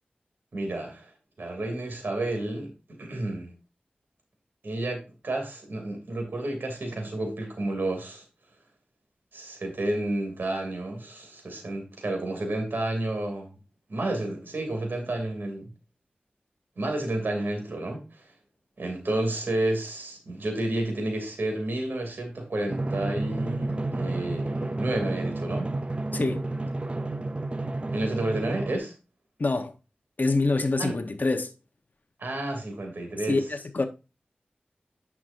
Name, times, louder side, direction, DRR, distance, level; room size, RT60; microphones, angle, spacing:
voice 1, 0.5-1.1 1.4-3.5 4.6-8.2 9.3-13.6 13.9-15.7 16.8-18.3 18.8-25.7 27.9-28.9 30.8-31.0 32.2-33.4, right 1 dB, 80° right, 2.7 m, -31 dB
Drum, 22.7-28.8, right 2 dB, 35° right, 0.6 m, -31 dB
voice 2, 26.1-26.4 29.4-29.7 30.2-31.5 33.3-33.9, left 3 dB, 60° left, 1.0 m, -25 dB
9.8 x 6.0 x 2.6 m
wide cardioid pair, 50°, 3 cm